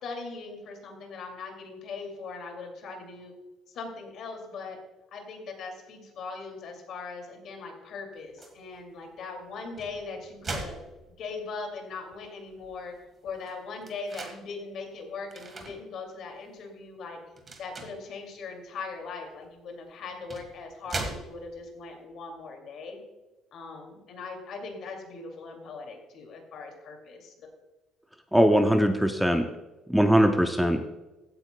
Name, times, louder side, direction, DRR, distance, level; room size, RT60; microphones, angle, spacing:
voice 1, 0.0-3.3 3.7-4.8 5.1-10.8 11.2-12.9 13.2-17.2 17.6-23.0 23.5-27.5, left 4 dB, 50° left, 3 dB, 2.4 m, -40 dB
sound 1, 8.4-8.6 9.6-11.5 12.1-12.2 12.5-14.4 15.3-15.8 16.3-16.5 17.3-18.1 19.4-19.5 20.1-21.7, right 3 dB, 25° right, 1.5 m, -39 dB
voice 2, 28.3-29.5 29.9-30.9, equal, ahead, 5 dB, 0.5 m, -21 dB
15.5 x 9.0 x 2.2 m, 1.1 s
cardioid pair, 165°, 0 cm